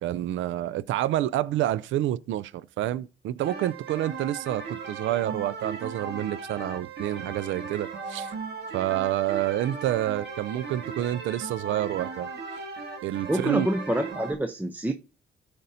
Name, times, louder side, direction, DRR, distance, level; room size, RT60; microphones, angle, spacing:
voice 1, 0.0-8.3 8.7-12.3 13.0-13.7, right 13 dB, 75° right, 0.4 m, -28 dB
sound 1, 3.4-14.3, right 4 dB, 55° right, 1.9 m, -37 dB
voice 2, 13.3-14.9, right 1 dB, 10° right, 0.6 m, -27 dB
13.0 x 5.2 x 2.7 m
cardioid pair, 90°, 20 cm